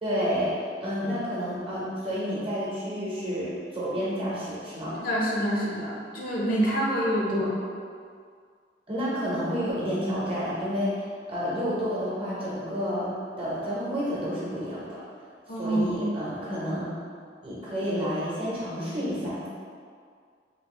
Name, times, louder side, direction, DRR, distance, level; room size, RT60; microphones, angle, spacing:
voice 1, 0.0-5.0 7.3-7.4 8.9-11.0 11.3-13.1 13.4-15.0 15.6-16.8 17.4-19.5, equal, 30° right, -7 dB, 0.8 m, -30 dB
voice 2, 4.9-7.5 15.5-16.0, right 1 dB, 50° left, -5 dB, 0.6 m, -26 dB
2.9 x 2.5 x 3.0 m, 2.1 s
head